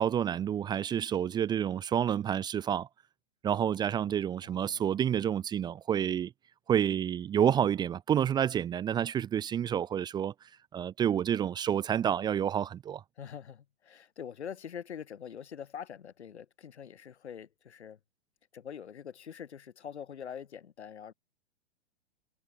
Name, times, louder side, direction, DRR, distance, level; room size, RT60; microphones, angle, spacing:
voice 1, 0.0-2.9 3.4-6.3 6.7-10.3 10.7-13.0, right 9 dB, 15° right, 0.9 m, -29 dB
voice 2, 4.4-4.9 13.2-18.0 18.5-21.1, left 8 dB, 85° left, 4.5 m, -44 dB
hypercardioid pair, 150°, 33 cm